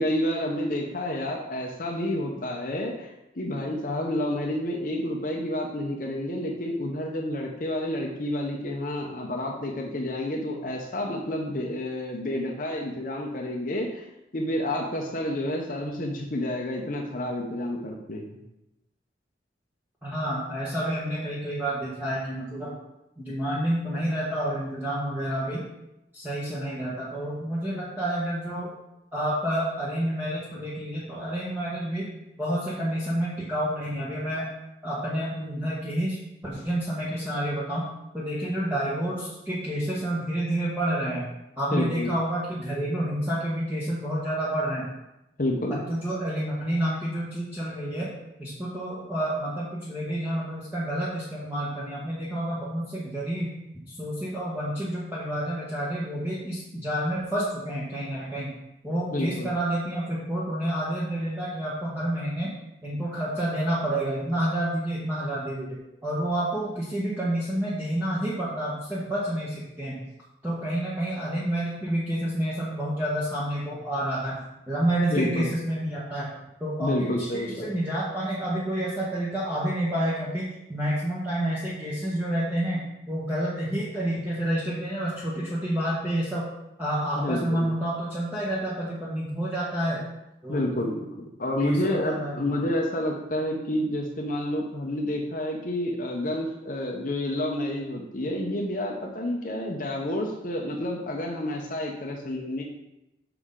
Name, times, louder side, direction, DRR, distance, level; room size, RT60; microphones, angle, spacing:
voice 1, 0.0-14.1 14.3-18.3 41.7-42.1 45.4-45.8 59.1-59.5 75.1-75.5 76.8-77.7 87.2-87.7 90.5-102.6, left 1 dB, 45° left, -1 dB, 0.8 m, -29 dB
voice 2, 20.0-22.7 23.2-25.6 26.1-28.7 29.1-32.1 32.4-34.5 34.8-36.2 36.4-37.8 38.1-41.3 41.6-44.9 45.9-48.1 48.4-53.5 53.9-58.5 58.8-62.5 62.8-70.0 70.4-74.4 74.7-76.3 76.6-86.5 86.8-90.0 90.4-90.6 91.6-92.7, right 1 dB, 10° right, -9 dB, 1.2 m, -29 dB
6.8 x 6.3 x 3.8 m, 0.92 s
head